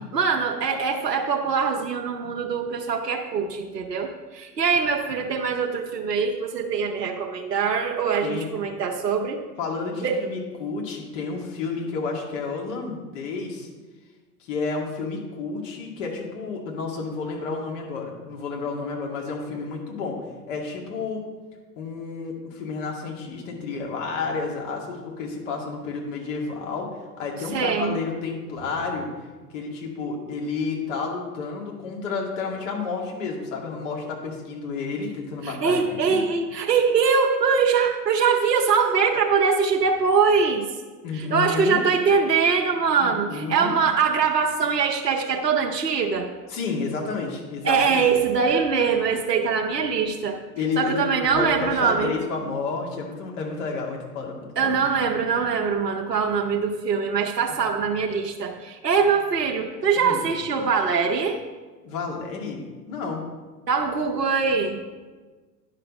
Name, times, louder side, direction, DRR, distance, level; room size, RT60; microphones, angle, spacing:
voice 1, 0.0-9.4 10.0-10.2 27.5-28.0 35.4-40.7 41.1-46.3 47.6-50.4 50.8-52.1 54.6-61.4 63.7-64.8, right 5 dB, 75° right, 1 dB, 1.0 m, -23 dB
voice 2, 9.6-13.7 14.4-20.2 20.5-21.2 21.8-29.1 29.5-36.2 41.0-41.9 43.0-43.7 46.5-48.1 50.6-54.7 60.0-60.2 61.8-63.2, left 4 dB, 50° left, 0 dB, 2.2 m, -31 dB
9.9 x 5.9 x 5.1 m, 1.3 s
figure-of-eight pair, 95°, 48 cm